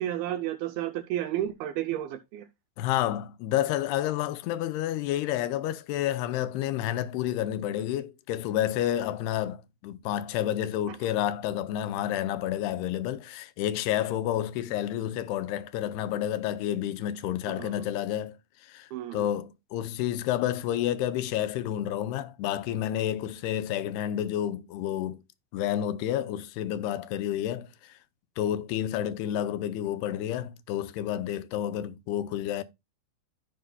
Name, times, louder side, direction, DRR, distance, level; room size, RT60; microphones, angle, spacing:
voice 1, 0.0-2.5 10.9-11.0 17.5-17.7 18.9-19.3, right 12 dB, 80° right, 2.3 m, -32 dB
voice 2, 2.8-25.2 25.5-28.0 28.4-32.6, left 11 dB, 85° left, 2.7 m, -30 dB
14.0 x 5.7 x 2.2 m
omnidirectional pair, 4.7 m